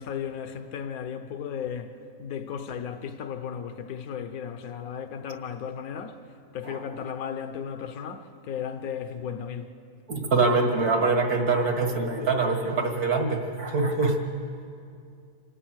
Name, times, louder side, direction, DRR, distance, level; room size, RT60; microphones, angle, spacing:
voice 1, 0.0-6.2 6.5-9.7, left 7 dB, 75° left, 1.4 m, -35 dB
voice 2, 10.1-14.2, right 3 dB, 75° right, 2.5 m, -24 dB
27.5 x 17.0 x 6.4 m
omnidirectional pair, 1.6 m